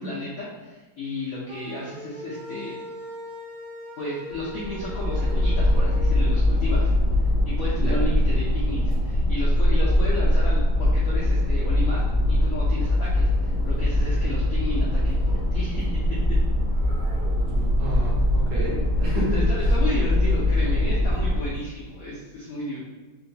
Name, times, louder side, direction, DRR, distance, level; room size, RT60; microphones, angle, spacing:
voice 1, 0.0-2.8 4.0-6.9 7.4-12.0 12.3-16.4 17.9-18.0 19.3-22.8, left 1 dB, 75° left, -6 dB, 0.8 m, -33 dB
sound 1, 1.5-6.3, left 2 dB, 90° right, 0.7 m, -40 dB
sound 2, 4.4-21.6, left 1 dB, 55° right, 1.0 m, -22 dB
voice 2, 17.4-19.4, right 1 dB, 70° right, -5 dB, 1.4 m, -31 dB
3.7 x 2.2 x 2.6 m, 1.2 s
omnidirectional pair, 2.1 m